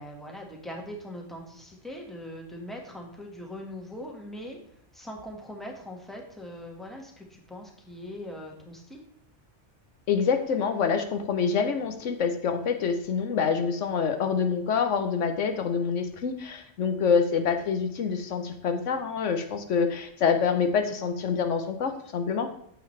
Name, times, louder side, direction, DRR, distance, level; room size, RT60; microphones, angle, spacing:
voice 1, 0.0-4.6 4.9-9.0, equal, ahead, 0 dB, 1.5 m, -41 dB
voice 2, 10.1-22.5, left 6 dB, 80° left, 7 dB, 1.2 m, -26 dB
9.1 x 7.3 x 3.3 m, 0.68 s
omnidirectional pair, 1.3 m